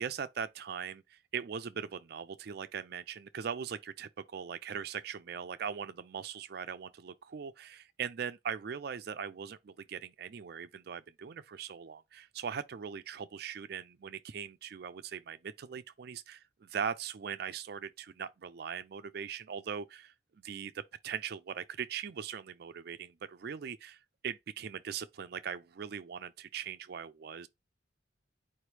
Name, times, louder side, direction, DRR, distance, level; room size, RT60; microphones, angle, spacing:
voice 1, 0.0-20.1 20.4-27.5, right 7 dB, 55° right, 0.4 m, -40 dB
4.5 x 3.0 x 3.3 m
head